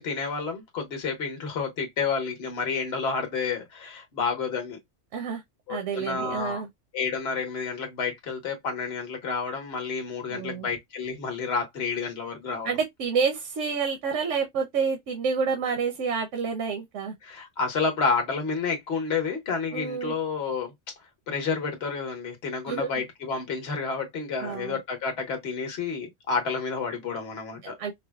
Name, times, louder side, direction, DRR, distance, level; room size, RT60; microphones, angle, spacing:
voice 1, 0.0-4.8 5.7-6.6 6.9-12.7 17.2-20.7 21.3-27.8, left 5 dB, 60° left, 1.3 m, -30 dB
voice 2, 5.7-6.7 10.3-10.7 12.6-17.1 19.7-20.1 22.7-22.9 24.4-24.8 27.8-27.9, right 5 dB, 80° right, 1.1 m, -28 dB
4.8 x 2.0 x 2.2 m
omnidirectional pair, 1.2 m